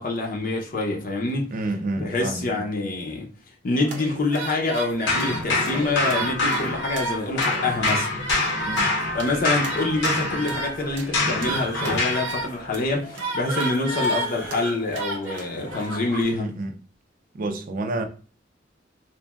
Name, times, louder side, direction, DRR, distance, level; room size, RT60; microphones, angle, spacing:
voice 1, 0.0-1.5 2.0-3.3 3.6-8.1 9.1-16.5, left 2 dB, 50° left, 0.5 m, -26 dB
voice 2, 1.5-2.6 8.6-8.9 16.3-16.7 17.3-18.0, right 2 dB, 50° right, 0.4 m, -29 dB
sound 1, 3.8-16.3, right 1 dB, 80° right, 0.7 m, -33 dB
sound 2, 5.1-7.1 7.4-12.3, left 2 dB, 85° left, 0.8 m, -26 dB
sound 3, 11.4-12.3 13.4-14.8, right 2 dB, 15° right, 0.8 m, -34 dB
2.9 x 2.5 x 2.3 m
head